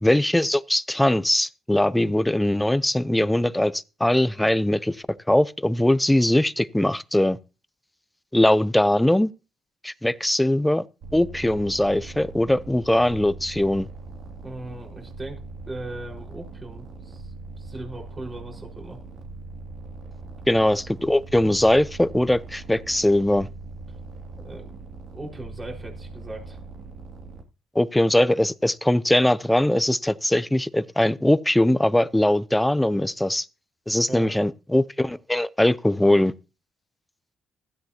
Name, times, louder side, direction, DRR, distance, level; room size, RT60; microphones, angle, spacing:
voice 1, 0.0-5.0 5.3-7.4 8.3-9.3 9.8-10.8 11.1-13.9 20.5-23.5 27.7-33.5 33.9-36.3, left 1 dB, 5° left, 0.6 m, -21 dB
sound 1, 11.0-27.4, right 3 dB, 75° right, 2.7 m, -41 dB
voice 2, 14.4-19.0 24.4-24.8 25.1-26.6 34.1-34.3, right 1 dB, 25° right, 4.9 m, -38 dB
16.0 x 13.0 x 2.9 m
cardioid pair, 90°, 0 cm